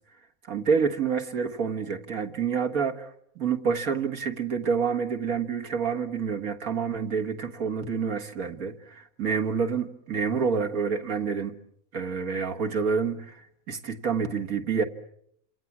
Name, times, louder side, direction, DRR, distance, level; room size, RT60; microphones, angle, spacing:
voice 1, 0.5-3.1 3.4-11.5 11.9-13.4 13.7-14.8, right 6 dB, 75° right, 3 dB, 2.0 m, -28 dB
29.0 x 27.0 x 7.3 m, 0.73 s
omnidirectional pair, 1.5 m